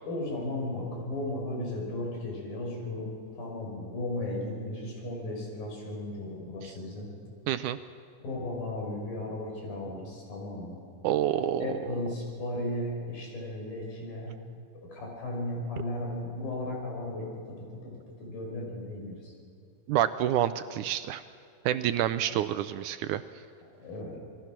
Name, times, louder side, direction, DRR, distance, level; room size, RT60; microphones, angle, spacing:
voice 1, 0.0-7.1 8.2-10.8 11.6-14.3 14.9-17.4 17.8-17.9 18.2-19.3 22.2-22.5 23.8-24.2, left 1 dB, 90° left, 0 dB, 7.1 m, -35 dB
voice 2, 7.5-7.8 11.0-11.9 19.9-21.2 21.7-23.2, right 11 dB, 80° right, 12 dB, 1.9 m, -28 dB
27.0 x 22.0 x 6.1 m, 2.5 s
omnidirectional pair, 4.0 m